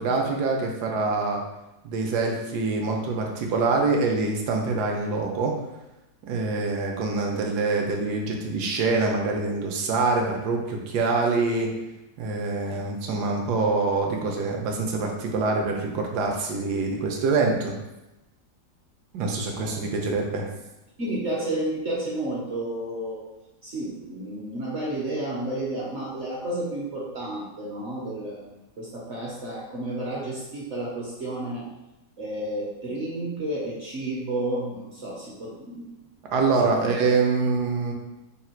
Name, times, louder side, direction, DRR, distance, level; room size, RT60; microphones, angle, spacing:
voice 1, 0.0-1.4 1.8-5.5 6.2-11.7 12.2-17.8 19.1-20.5 36.3-37.9, right 3 dB, 70° right, 1 dB, 1.2 m, -25 dB
voice 2, 21.0-23.2 23.6-31.6 32.2-35.9, right 1 dB, 50° right, -5 dB, 0.9 m, -31 dB
3.6 x 2.4 x 4.3 m, 0.97 s
omnidirectional pair, 1.9 m